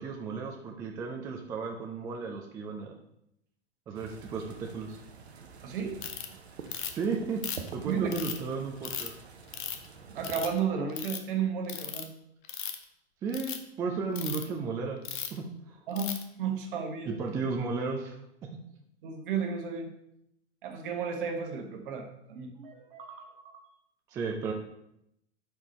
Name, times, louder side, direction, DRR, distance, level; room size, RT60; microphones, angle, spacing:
voice 1, 0.0-2.9 3.9-5.0 6.9-9.1 13.2-15.0 15.3-15.8 17.1-18.5 24.1-24.5, right 4 dB, 10° right, 2 dB, 0.3 m, -34 dB
sound 1, 3.9-10.5, right 5 dB, 75° right, 0.7 m, -47 dB
voice 2, 5.6-6.0 7.8-8.1 10.1-12.1 15.9-17.1 19.0-19.9 20.6-23.7, right 6 dB, 50° right, 4 dB, 1.1 m, -33 dB
Ratchet pawl, 6.0-6.3 6.7-7.0 7.4-8.4 8.8-9.1 9.5-9.9 10.2-10.6 10.9-11.2 11.7-12.0 12.4-12.8 13.3-13.6 14.2-14.4 15.0-15.4 16.0-16.2, left 9 dB, 50° left, 0.7 m, -36 dB
4.9 x 4.6 x 4.1 m, 0.79 s
figure-of-eight pair, 95°, 32 cm